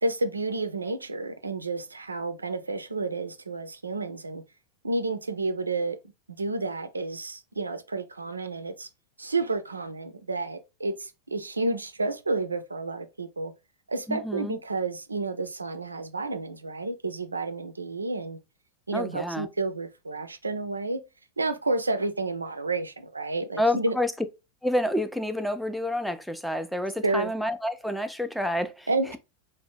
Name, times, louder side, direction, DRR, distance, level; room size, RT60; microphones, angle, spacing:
voice 1, 0.0-4.4 4.8-6.0 6.4-8.9 9.2-13.5 13.9-18.4 18.9-21.0 21.4-24.0 27.0-27.3 28.9-29.2, right 3 dB, 85° right, 0.3 m, -30 dB
voice 2, 14.1-14.6 18.9-19.5 23.6-24.1 24.6-29.2, left 1 dB, ahead, 0.3 m, -29 dB
2.6 x 2.0 x 3.4 m
figure-of-eight pair, 90°, 0 cm